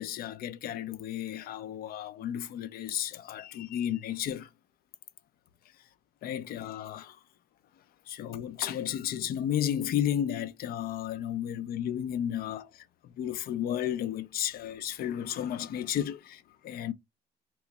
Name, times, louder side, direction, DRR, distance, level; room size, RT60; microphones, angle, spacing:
voice 1, 0.0-4.5 6.2-7.2 8.1-12.7 13.2-16.9, left 10 dB, 65° left, 0.5 m, -33 dB
3.0 x 2.6 x 3.3 m
cardioid pair, 110°, 17 cm